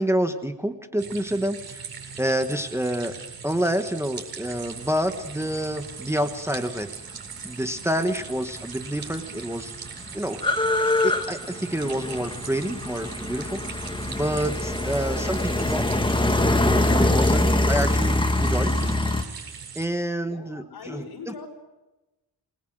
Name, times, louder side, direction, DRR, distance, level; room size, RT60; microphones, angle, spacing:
voice 1, 0.0-1.9 2.2-3.1 3.4-7.1 7.4-9.7 10.1-10.7 11.0-15.9 16.3-19.0 19.7-21.3, equal, 5° right, 7 dB, 1.2 m, -28 dB
sound 1, 1.0-19.9, right 6 dB, 60° right, 7.8 m, -40 dB
sound 2, 8.6-8.7 8.9-19.2, left 2 dB, 10° left, 1.7 m, -24 dB
voice 2, 20.2-21.5, left 5 dB, 70° left, 4 dB, 5.5 m, -41 dB
28.0 x 20.5 x 7.7 m, 1.0 s
wide cardioid pair, 180°, 40 cm